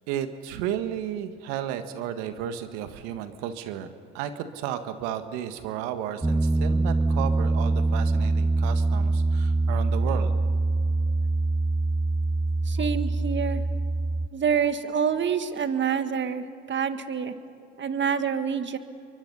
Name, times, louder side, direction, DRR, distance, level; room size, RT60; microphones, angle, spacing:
voice 1, 0.1-10.3, right 10 dB, 75° right, 9 dB, 1.6 m, -33 dB
Piano, 6.2-14.3, right 2 dB, 5° right, 0.5 m, -24 dB
voice 2, 12.6-13.6 14.3-17.3 17.8-18.8, right 7 dB, 40° right, 10 dB, 1.7 m, -27 dB
28.5 x 23.5 x 5.6 m, 2.5 s
hypercardioid pair, 65°, 29 cm